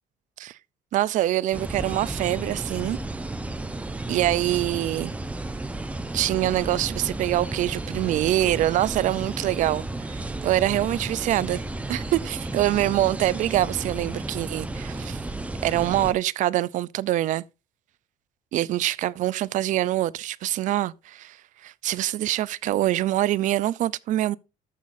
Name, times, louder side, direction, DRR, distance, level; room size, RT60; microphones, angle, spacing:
voice 1, 0.9-3.0 4.1-5.1 6.1-9.8 10.1-11.6 11.9-15.2 15.6-17.4 18.5-21.4 21.6-24.4, right 14 dB, 55° right, 0.4 m, -25 dB
sound 1, 1.5-16.1, right 2 dB, 10° right, 0.6 m, -33 dB
13.5 x 5.8 x 2.6 m
cardioid pair, 140°, 15 cm